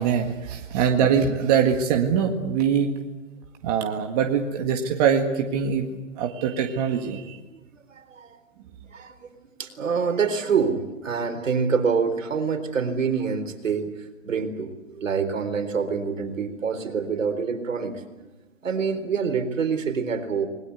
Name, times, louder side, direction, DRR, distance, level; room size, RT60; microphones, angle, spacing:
voice 1, 0.0-2.9 3.6-5.9 6.2-7.4, right 7 dB, 30° right, 3 dB, 1.9 m, -23 dB
voice 2, 7.5-8.4 8.9-13.9 14.2-18.0 18.6-20.5, right 5 dB, 70° right, 7 dB, 4.2 m, -26 dB
29.0 x 21.0 x 8.4 m, 1.1 s
hypercardioid pair, 150°, 40 cm